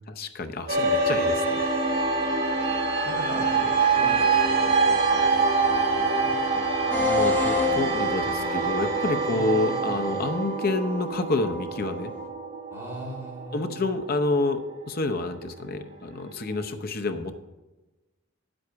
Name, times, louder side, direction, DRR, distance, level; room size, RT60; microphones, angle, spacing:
voice 1, 0.1-1.6 6.9-12.1 13.5-14.6 14.9-17.3, left 2 dB, 50° left, 8 dB, 0.7 m, -28 dB
sound 1, 0.7-15.2, right 4 dB, 55° right, 1.9 m, -25 dB
voice 2, 3.0-6.8 9.3-9.9 12.7-13.8, equal, 15° right, -5 dB, 3.2 m, -40 dB
sound 2, 6.9-12.3, left 4 dB, 10° left, 1.0 m, -31 dB
9.7 x 7.9 x 4.7 m, 1.1 s
head